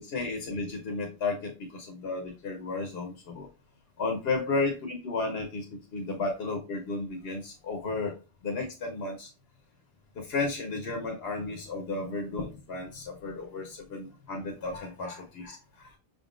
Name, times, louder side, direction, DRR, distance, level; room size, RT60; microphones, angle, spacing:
voice 1, 0.0-3.5 4.0-8.2 8.4-9.3 10.1-16.0, left 3 dB, 75° left, 2 dB, 1.0 m, -33 dB
5.6 x 3.7 x 2.4 m, 0.32 s
omnidirectional pair, 1.1 m